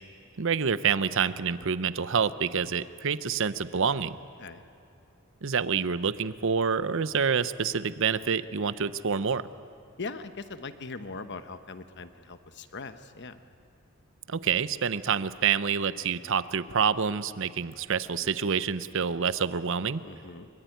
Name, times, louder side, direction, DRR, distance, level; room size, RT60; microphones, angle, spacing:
voice 1, 0.4-4.1 5.4-9.4 14.3-20.0, right 6 dB, 60° right, 14 dB, 0.7 m, -27 dB
voice 2, 10.0-13.4 20.0-20.5, left 4 dB, 55° left, 10 dB, 1.1 m, -40 dB
23.5 x 23.5 x 9.3 m, 2.7 s
head